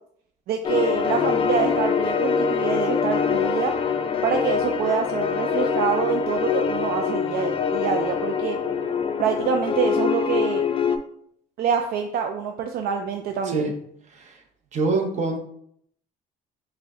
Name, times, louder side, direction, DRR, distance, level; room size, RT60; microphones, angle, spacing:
voice 1, 0.5-3.7 4.2-8.6 9.2-10.7 11.6-13.7, right 7 dB, 65° right, 4 dB, 0.4 m, -26 dB
sound 1, 0.6-11.0, left 6 dB, 35° left, 0.3 m, -24 dB
voice 2, 14.1-14.4 14.7-15.4, right 3 dB, 45° right, 2 dB, 0.8 m, -25 dB
4.8 x 2.2 x 3.6 m, 0.69 s
cardioid pair, 110°, 17 cm